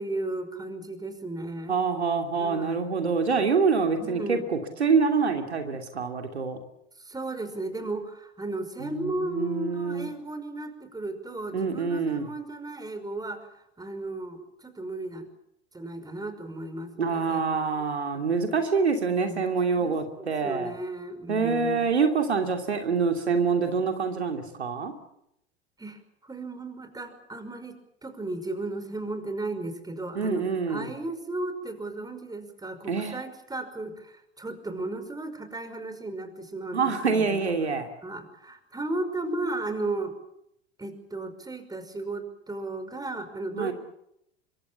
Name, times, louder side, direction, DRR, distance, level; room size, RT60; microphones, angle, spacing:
voice 1, 0.0-1.8 2.4-2.8 4.0-4.5 7.0-15.3 15.7-17.8 19.1-21.9 25.8-37.5 38.0-40.1 40.8-43.7, right 2 dB, 10° right, 9 dB, 5.5 m, -35 dB
voice 2, 1.7-6.6 8.8-10.1 11.5-12.3 17.0-20.7 21.3-24.9 30.1-30.9 32.9-33.2 36.7-37.9 43.5-43.7, right 5 dB, 85° right, 5 dB, 3.0 m, -26 dB
26.0 x 24.0 x 7.2 m, 0.76 s
figure-of-eight pair, 75°, 32 cm